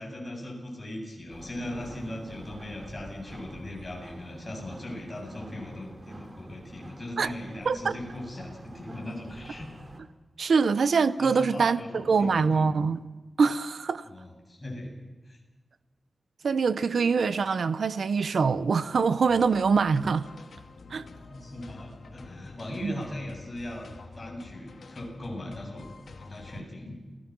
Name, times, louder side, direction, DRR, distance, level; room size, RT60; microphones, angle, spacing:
voice 1, 0.0-9.7 11.2-12.6 14.0-14.9 15.3-15.4 20.9-21.0 21.3-23.9 24.1-25.9 26.2-27.0, left 1 dB, 25° left, 7.9 m, -39 dB
sound 1, 1.3-10.0, right 1 dB, 35° right, 3.0 m, -47 dB
voice 2, 10.4-13.0 13.4-14.0 16.4-20.3 20.9-21.1 22.8-23.0, right 5 dB, 80° right, 0.9 m, -24 dB
sound 2, 19.3-26.6, left 3 dB, 75° left, 2.4 m, -48 dB
29.5 x 18.0 x 6.3 m
wide cardioid pair, 150°, 0 cm